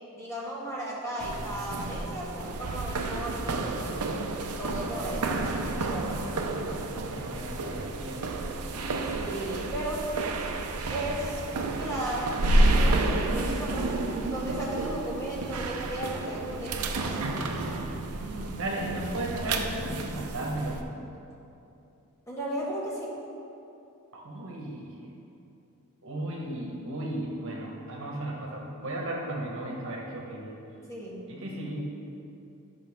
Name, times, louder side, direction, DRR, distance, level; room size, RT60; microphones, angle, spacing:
voice 1, 0.1-3.8 4.5-6.4 9.1-10.1 10.9-11.4 11.7-12.3 12.8-17.4 22.3-23.1 30.9-31.2, right 1 dB, 15° left, -6 dB, 1.5 m, -35 dB
sound 1, 1.2-20.8, right 2 dB, 85° right, 0.6 m, -30 dB
voice 2, 4.7-5.7 6.9-8.2 18.1-20.8 24.1-24.9 26.0-30.5 31.3-31.9, right 1 dB, 60° right, -2 dB, 1.3 m, -35 dB
11.0 x 5.6 x 3.6 m, 2.8 s
head